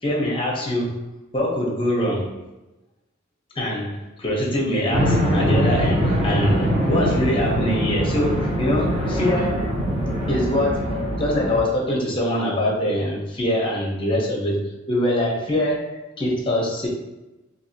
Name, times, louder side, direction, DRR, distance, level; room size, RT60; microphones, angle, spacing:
voice 1, 0.0-1.0 1.3-2.4 3.5-9.8 10.3-16.9, left 1 dB, 25° left, -2 dB, 0.7 m, -24 dB
sound 1, 4.9-11.6, equal, 30° right, 0.6 m, -23 dB
2.7 x 2.7 x 2.7 m, 1.0 s
head